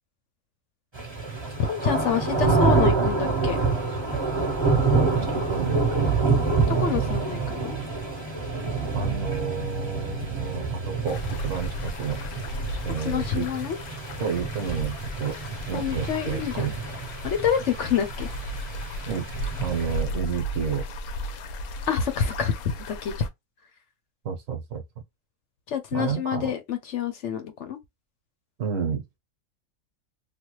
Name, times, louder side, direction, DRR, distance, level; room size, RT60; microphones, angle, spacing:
sound 1, 0.9-20.0, right 4 dB, 20° right, 1.0 m, -27 dB
voice 1, 1.7-3.6 6.7-7.8 13.0-13.8 15.7-16.7 17.2-18.3 21.9-22.5 22.9-23.1 25.7-27.8, left 8 dB, 65° left, 0.9 m, -27 dB
voice 2, 4.9-6.1 8.9-12.2 12.8-13.5 14.2-15.4 15.7-16.7 19.1-19.3 19.6-20.8 24.2-24.8 25.9-26.5 28.6-29.0, right 6 dB, 65° right, 1.2 m, -30 dB
sound 2, 11.1-23.3, equal, 90° left, 1.1 m, -35 dB
3.4 x 2.3 x 3.0 m
omnidirectional pair, 1.5 m